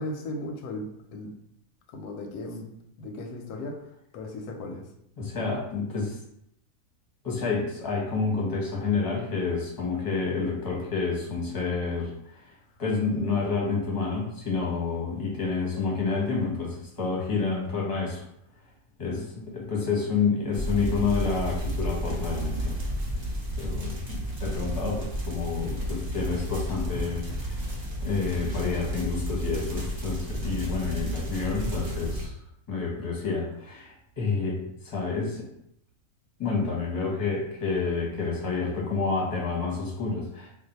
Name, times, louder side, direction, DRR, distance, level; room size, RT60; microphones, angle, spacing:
voice 1, 0.0-1.3 1.9-2.7 3.0-4.9 19.0-19.4 32.9-33.0, left 1 dB, 90° left, 3 dB, 1.1 m, -37 dB
voice 2, 5.2-6.2 7.2-18.2 19.0-22.8 23.6-27.7 28.0-32.4 32.7-35.5 36.4-40.5, left 4 dB, 20° left, -4 dB, 0.7 m, -29 dB
sound 1, 20.5-32.3, equal, 35° right, 0.4 m, -32 dB
2.6 x 2.2 x 4.0 m, 0.76 s
omnidirectional pair, 1.6 m